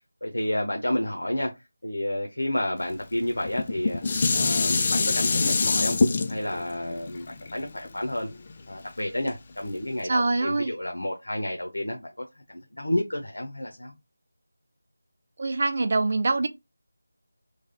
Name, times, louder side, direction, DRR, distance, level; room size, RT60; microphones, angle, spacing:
voice 1, 0.2-1.5 1.8-4.0 4.3-6.0 6.3-8.3 8.7-13.9, left 1 dB, 90° left, 0.8 m, -30 dB
Dishes pots and pans, 3.4-8.7 9.3-9.4, left 4 dB, 30° left, 0.4 m, -25 dB
voice 2, 10.0-10.8 15.4-16.5, right 3 dB, 45° right, 0.4 m, -24 dB
3.2 x 2.2 x 3.8 m
figure-of-eight pair, 170°, 0 cm